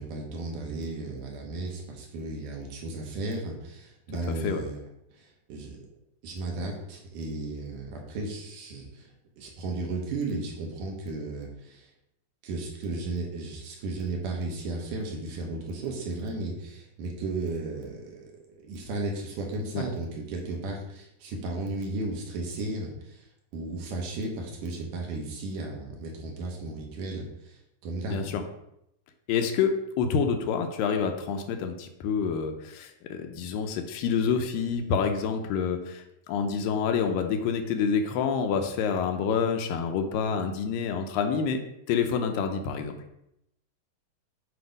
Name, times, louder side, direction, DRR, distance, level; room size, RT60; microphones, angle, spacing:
voice 1, 0.0-4.8 5.1-5.9 6.2-11.9 12.4-23.3 23.5-28.3, right 2 dB, 70° right, 0 dB, 2.4 m, -35 dB
voice 2, 28.1-28.4 29.3-29.7 30.0-41.6 41.9-43.0, left 6 dB, 80° left, 5 dB, 2.2 m, -27 dB
7.9 x 2.8 x 5.1 m, 0.80 s
omnidirectional pair, 4.1 m